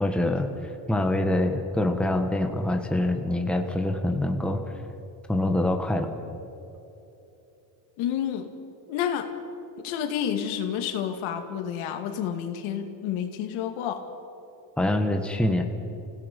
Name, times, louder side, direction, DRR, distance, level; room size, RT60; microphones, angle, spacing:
voice 1, 0.0-4.6 5.3-6.1 14.8-15.6, left 1 dB, ahead, 4 dB, 1.4 m, -25 dB
voice 2, 8.0-8.5 8.9-9.3 9.8-14.0, left 9 dB, 85° left, 5 dB, 2.3 m, -29 dB
29.5 x 17.0 x 5.3 m, 3.0 s
cardioid pair, 140°, 48 cm